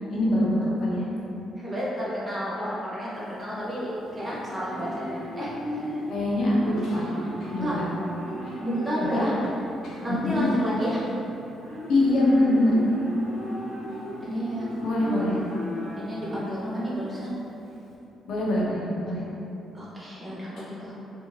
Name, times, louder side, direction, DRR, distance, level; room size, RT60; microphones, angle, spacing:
voice 1, 0.1-1.1 6.1-7.1 7.4-7.8 8.5-8.6 9.1-9.3 9.8-10.5 11.9-12.8 14.8-15.4 18.3-19.2, left 1 dB, 65° left, -5 dB, 0.8 m, -24 dB
voice 2, 1.6-6.0 7.6-7.8 8.6-9.4 10.0-11.0 14.2-14.7 15.1-15.2 16.0-17.4 19.7-20.9, equal, 20° right, -9 dB, 1.1 m, -31 dB
Livestock farm animals working animals, 3.1-17.9, equal, 80° right, 0.8 m, -37 dB
3.5 x 2.5 x 3.1 m, 3.0 s
cardioid pair, 90°, 0 cm